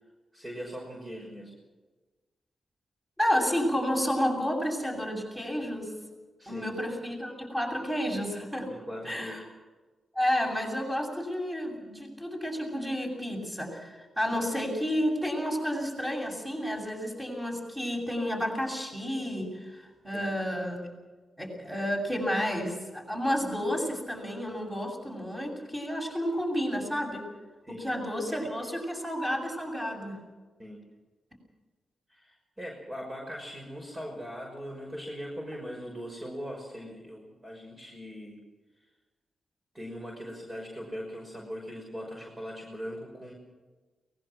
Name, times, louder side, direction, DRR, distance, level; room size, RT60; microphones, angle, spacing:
voice 1, 0.3-1.5 6.4-6.7 8.6-9.4 14.3-14.4 20.1-20.3 27.7-27.9 30.6-30.8 32.1-38.4 39.7-43.3, equal, 25° right, -1 dB, 5.8 m, -40 dB
voice 2, 3.2-5.9 6.5-8.7 9.0-9.4 10.1-20.9 21.4-27.2 27.7-30.2, equal, 10° right, 1 dB, 7.7 m, -31 dB
23.5 x 20.0 x 6.2 m, 1.3 s
cardioid pair, 85°, 0 cm